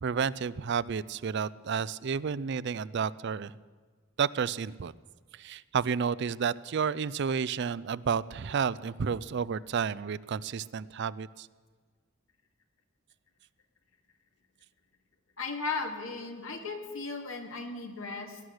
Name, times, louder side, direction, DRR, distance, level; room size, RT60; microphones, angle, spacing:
voice 1, 0.0-3.6 4.2-4.9 5.3-11.5, right 6 dB, 60° right, 19 dB, 0.4 m, -31 dB
voice 2, 15.4-18.4, left 3 dB, 85° left, 3 dB, 2.2 m, -36 dB
19.0 x 11.0 x 6.4 m, 1.5 s
head